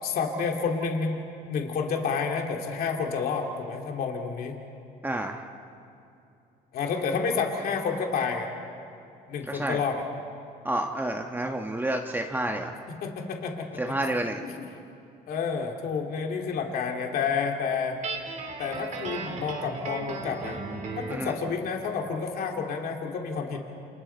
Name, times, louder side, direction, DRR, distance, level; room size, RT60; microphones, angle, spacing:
voice 1, 0.0-4.6 6.7-8.5 9.3-10.0 13.0-14.0 14.4-14.7 15.3-18.0 18.6-20.6 21.0-23.6, left 5 dB, 60° left, 2 dB, 2.4 m, -30 dB
voice 2, 5.0-5.4 9.4-9.8 10.6-12.8 13.8-14.4 21.1-21.3, right 1 dB, 10° right, 3 dB, 1.2 m, -29 dB
Guitar, 18.0-21.3, right 4 dB, 45° right, 3.1 m, -36 dB
29.0 x 28.0 x 4.4 m, 2.6 s
cardioid pair, 110°, 17 cm